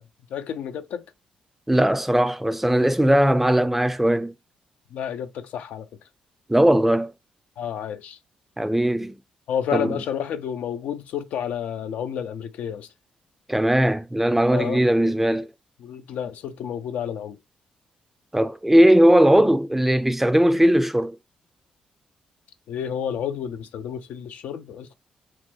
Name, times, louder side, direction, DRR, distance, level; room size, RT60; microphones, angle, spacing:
voice 1, 0.3-1.0 4.9-5.9 7.6-8.2 9.5-12.9 14.5-14.8 15.8-17.4 22.7-24.9, left 9 dB, 80° left, 0.4 m, -30 dB
voice 2, 1.7-4.3 6.5-7.1 8.6-9.2 9.7-10.0 13.5-15.5 18.3-21.2, right 1 dB, 10° right, 0.3 m, -19 dB
3.0 x 2.2 x 3.1 m
cardioid pair, 80°, 3 cm